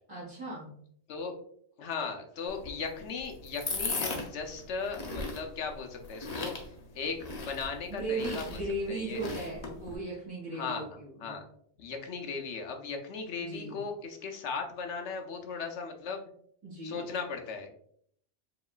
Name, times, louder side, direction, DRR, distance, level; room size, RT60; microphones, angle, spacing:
voice 1, 0.1-0.8 7.9-11.4 13.4-13.8 16.6-17.1, right 2 dB, 20° right, -9 dB, 1.8 m, -37 dB
voice 2, 1.8-6.5 6.9-8.6 8.9-9.2 10.5-11.4 11.8-16.2 16.8-17.7, left 5 dB, 75° left, 3 dB, 1.0 m, -37 dB
sound 1, 2.5-10.0, left 3 dB, 40° left, 0.7 m, -38 dB
4.9 x 3.1 x 2.3 m, 0.64 s
omnidirectional pair, 1.2 m